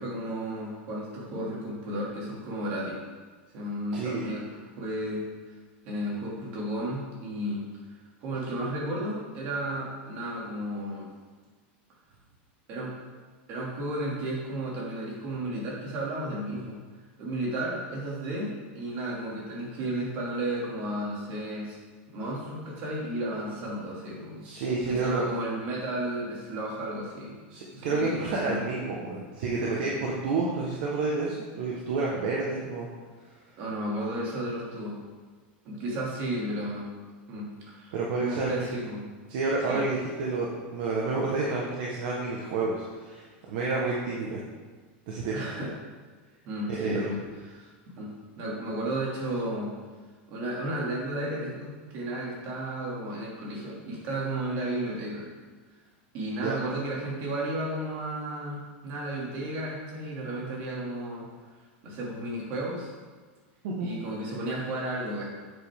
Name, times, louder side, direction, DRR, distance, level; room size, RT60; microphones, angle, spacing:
voice 1, 0.0-3.0 3.5-5.3 5.8-7.6 8.2-11.1 12.7-12.9 13.5-16.8 17.2-21.8 22.1-24.4 24.9-27.4 27.7-28.6 32.6-32.7 33.6-35.0 35.6-36.9 37.3-39.1 39.7-39.8 45.3-45.7 46.4-49.7 50.3-55.3 56.1-61.3 61.8-62.9 63.8-65.3, right 1 dB, 35° right, -4 dB, 2.7 m, -33 dB
voice 2, 3.9-4.2 24.4-25.2 27.5-32.9 37.9-38.8 39.3-44.4 45.1-45.4 46.7-47.1 56.4-56.5 63.6-63.9, right 3 dB, 50° right, -3 dB, 1.4 m, -29 dB
9.7 x 7.9 x 3.7 m, 1.4 s
supercardioid pair, 175°, 6 cm